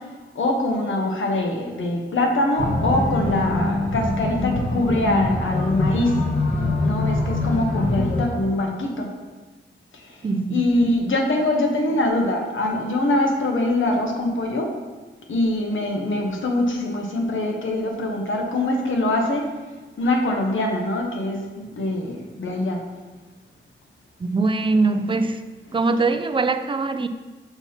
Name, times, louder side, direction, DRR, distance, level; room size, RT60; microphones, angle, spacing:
voice 1, 0.3-6.1 6.8-9.1 10.5-14.7 15.3-19.4 20.0-22.8, left 1 dB, 85° left, 1.0 m, -23 dB
sound 1, 2.6-8.2, left 2 dB, 70° left, 1.3 m, -23 dB
voice 2, 10.2-10.6 24.2-25.4 25.7-27.1, right 3 dB, 25° right, 0.3 m, -22 dB
6.8 x 2.8 x 5.7 m
wide cardioid pair, 85°, 20 cm